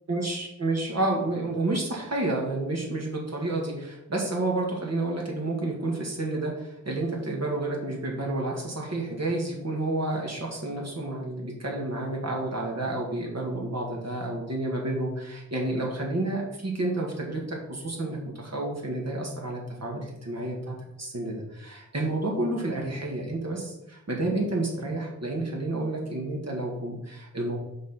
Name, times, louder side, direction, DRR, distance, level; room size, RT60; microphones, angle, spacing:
voice 1, 0.1-27.6, right 2 dB, 55° right, -1 dB, 1.8 m, -30 dB
6.0 x 4.5 x 5.6 m, 0.86 s
wide cardioid pair, 85°, 31 cm